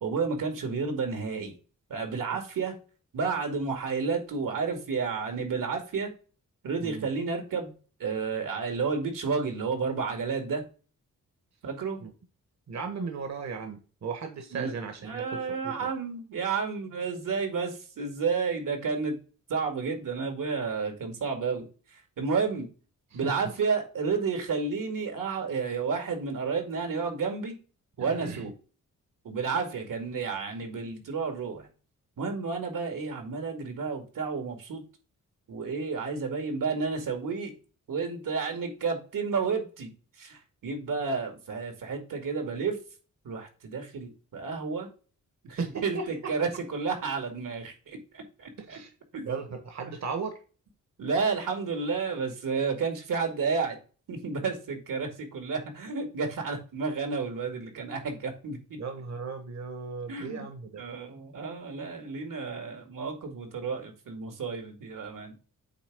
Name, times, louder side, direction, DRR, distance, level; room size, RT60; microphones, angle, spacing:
voice 1, 0.0-1.5 1.9-2.7 3.1-6.1 6.6-7.7 8.0-10.7 11.6-12.0 14.5-14.7 15.0-19.2 19.5-21.7 21.9-22.7 23.1-27.6 28.0-28.5 29.2-31.7 32.2-34.8 35.5-37.5 37.9-39.9 40.2-42.8 43.2-44.9 45.4-48.8 49.1-49.3 51.0-53.8 54.1-58.8 60.1-60.5 60.8-65.3, right 5 dB, 80° right, 4 dB, 2.2 m, -31 dB
voice 2, 6.8-7.1 12.0-12.1 12.7-15.9 23.1-23.4 28.0-28.5 45.6-46.3 48.6-48.9 49.2-50.4 58.8-60.8, right 5 dB, 55° right, 6 dB, 1.3 m, -36 dB
8.3 x 3.5 x 4.9 m, 0.36 s
wide cardioid pair, 110°, 32 cm